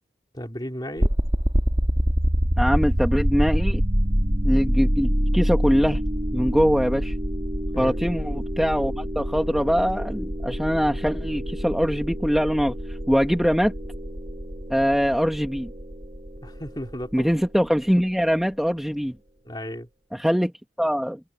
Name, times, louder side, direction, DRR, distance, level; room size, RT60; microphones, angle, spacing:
voice 1, 0.3-1.2 7.7-8.0 16.4-17.3 19.4-19.9, equal, 25° left, 3.3 m, -34 dB
sound 1, 1.0-17.9, equal, 35° right, 3.9 m, -26 dB
voice 2, 2.6-3.8 4.4-6.0 6.3-7.2 7.8-13.7 14.7-15.7 17.1-19.2 20.1-20.5 20.8-21.2, equal, ahead, 1.7 m, -23 dB
head